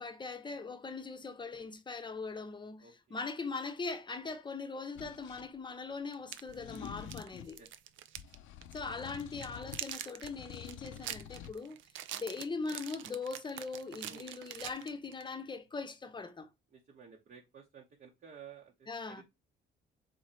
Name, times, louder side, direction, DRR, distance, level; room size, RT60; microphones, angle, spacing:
voice 1, 0.0-7.6 8.7-11.8 12.1-16.5 18.9-19.2, left 4 dB, 25° left, 0.7 m, -41 dB
voice 2, 2.8-3.2 7.6-7.7 14.0-14.3 16.7-19.2, right 7 dB, 50° right, 0.9 m, -54 dB
sound 1, 5.0-5.5 6.5-7.6 8.2-9.9 10.2-11.6, left 10 dB, 80° left, 0.4 m, -48 dB
sound 2, 6.1-8.3 8.6-8.8 9.2-15.3, right 11 dB, 75° right, 0.4 m, -44 dB
3.9 x 2.8 x 4.3 m
cardioid pair, 90°, 20 cm